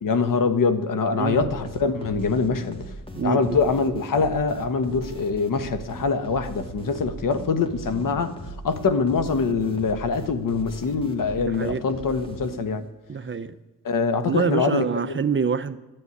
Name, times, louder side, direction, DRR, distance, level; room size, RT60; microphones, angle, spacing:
voice 1, 0.0-2.8 3.2-8.3 8.6-12.8 13.8-15.2, left 4 dB, 65° left, 1.3 m, -24 dB
voice 2, 1.1-1.5 3.2-3.6 11.4-11.9 13.1-13.6 14.2-15.8, right 6 dB, 35° right, 0.7 m, -26 dB
sound 1, 1.3-12.9, right 1 dB, 15° left, 2.0 m, -39 dB
13.0 x 8.9 x 9.7 m
cardioid pair, 95°, 36 cm